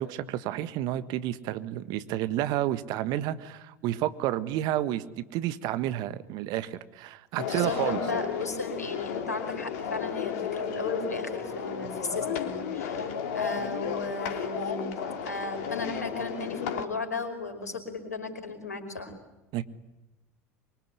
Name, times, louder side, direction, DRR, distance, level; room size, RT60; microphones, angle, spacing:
voice 1, 0.0-5.0 5.3-8.0 19.5-19.6, right 13 dB, 55° right, 13 dB, 1.5 m, -30 dB
voice 2, 7.4-14.9 15.2-19.1, left 3 dB, 85° left, 6 dB, 5.3 m, -35 dB
sound 1, 7.4-16.8, left 7 dB, 65° left, 3.2 m, -33 dB
24.5 x 24.5 x 9.9 m, 1.0 s
figure-of-eight pair, 75°, 9 cm